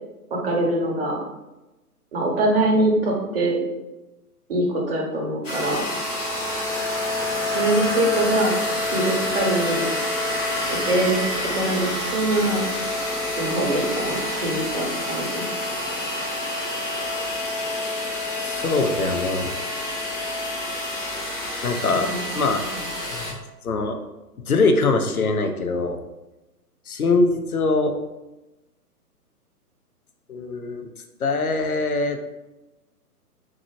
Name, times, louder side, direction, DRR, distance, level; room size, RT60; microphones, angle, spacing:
voice 1, 0.3-1.2 2.1-3.6 4.5-5.8 7.5-8.5 8.9-9.9 10.7-11.2 11.5-12.6 13.4-15.5 22.0-22.3, right 1 dB, 40° right, -1 dB, 1.0 m, -23 dB
sound 1, 5.4-23.3, left 1 dB, 50° left, 1.3 m, -27 dB
voice 2, 18.4-19.5 21.6-22.6 23.1-23.3 23.6-24.0 24.5-26.0 26.9-27.9 30.3-30.9 31.2-32.2, left 3 dB, 65° left, 6 dB, 0.6 m, -22 dB
3.7 x 3.0 x 3.0 m, 1.0 s
figure-of-eight pair, 125°, 46 cm